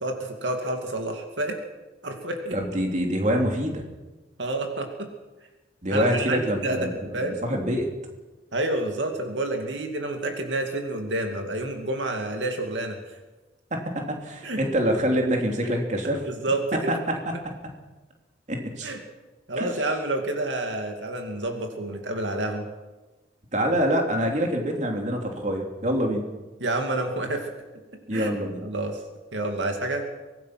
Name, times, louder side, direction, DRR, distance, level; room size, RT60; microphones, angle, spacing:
voice 1, 0.0-1.6 2.0-2.6 4.4-5.1 5.9-7.4 8.5-13.0 14.4-14.6 16.1-17.0 18.8-19.0 19.5-22.6 26.6-27.5 28.1-28.4 28.6-29.0 29.3-30.0, right 2 dB, 75° right, 4 dB, 2.5 m, -29 dB
voice 2, 2.5-3.8 5.8-7.9 13.7-16.2 18.5-18.9 19.6-19.7 23.5-26.2 28.1-28.6, equal, 40° right, 2 dB, 3.0 m, -25 dB
24.0 x 18.0 x 6.0 m, 1.2 s
head